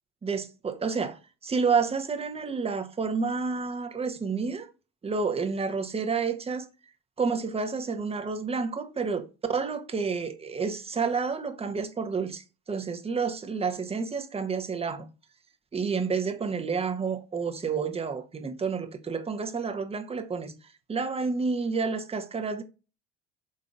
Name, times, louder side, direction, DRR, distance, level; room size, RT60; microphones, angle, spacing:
voice 1, 0.2-4.7 5.0-6.7 7.2-15.1 15.7-20.5 20.9-22.6, right 5 dB, 20° right, 0.7 m, -30 dB
5.3 x 3.6 x 2.3 m
hypercardioid pair, 75°, 33 cm